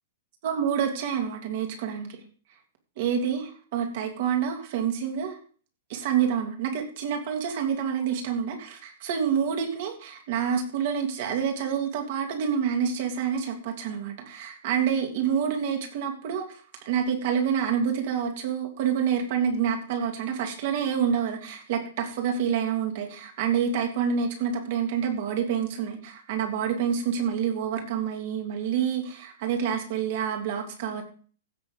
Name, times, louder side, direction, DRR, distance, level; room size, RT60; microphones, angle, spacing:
voice 1, 0.4-2.2 3.0-5.4 5.9-31.0, right 7 dB, 45° right, 3 dB, 2.9 m, -27 dB
15.5 x 6.9 x 3.9 m, 0.42 s
hypercardioid pair, 165°, 0 cm